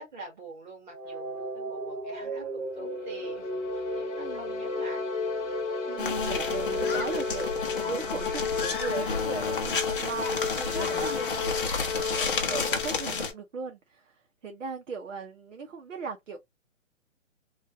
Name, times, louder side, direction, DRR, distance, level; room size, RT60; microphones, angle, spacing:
voice 1, 0.0-5.0 11.2-12.4, right 2 dB, 35° right, 1.8 m, -46 dB
sound 1, 0.9-8.9, right 1 dB, 10° right, 0.6 m, -35 dB
sound 2, 2.8-13.3, left 6 dB, 65° left, 1.0 m, -34 dB
voice 2, 4.2-4.6 5.9-11.1 12.0-14.1 14.4-16.4, right 5 dB, 70° right, 0.9 m, -38 dB
sound 3, 6.0-13.3, left 4 dB, 45° left, 0.8 m, -31 dB
3.1 x 2.4 x 2.7 m
hypercardioid pair, 175°, 39 cm